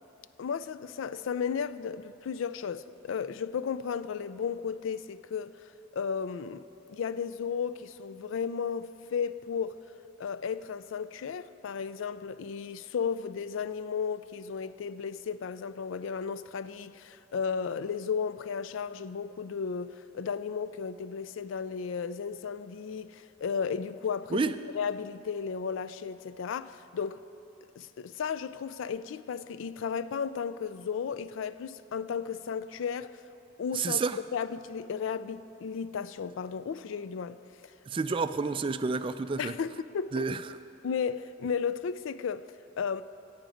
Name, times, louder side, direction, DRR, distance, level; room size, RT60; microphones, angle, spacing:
voice 1, 0.4-6.6 6.9-9.8 10.2-24.4 24.7-27.2 27.8-33.2 33.6-34.0 34.3-37.4 37.6-37.7 39.4-40.3 40.8-43.0, left 6 dB, 75° left, 0.4 m, -34 dB
voice 2, 33.7-34.2 37.9-39.5 40.1-40.4, right 4 dB, 25° right, 0.3 m, -29 dB
14.0 x 5.1 x 9.1 m
head